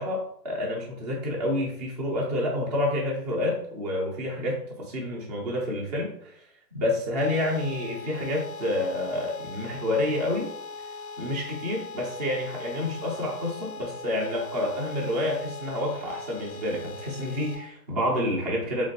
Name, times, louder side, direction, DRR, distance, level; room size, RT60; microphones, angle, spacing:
voice 1, 0.0-6.5 6.7-10.5 11.2-18.9, left 1 dB, 30° right, -3 dB, 0.4 m, -29 dB
sound 1, 7.2-17.6, left 4 dB, 25° left, 0.5 m, -40 dB
3.2 x 2.9 x 2.7 m, 0.68 s
hypercardioid pair, 145°, 48 cm